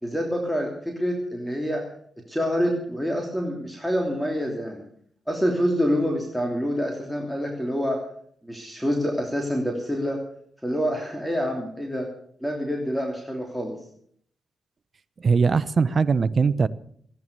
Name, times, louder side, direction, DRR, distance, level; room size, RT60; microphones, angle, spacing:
voice 1, 0.0-1.8 2.3-4.8 5.3-8.0 8.4-10.2 10.6-12.1 12.4-13.8, equal, 5° left, 1 dB, 3.0 m, -26 dB
voice 2, 15.2-16.7, right 5 dB, 50° right, 17 dB, 0.7 m, -20 dB
15.5 x 10.5 x 6.8 m, 0.63 s
cardioid pair, 60°, 0 cm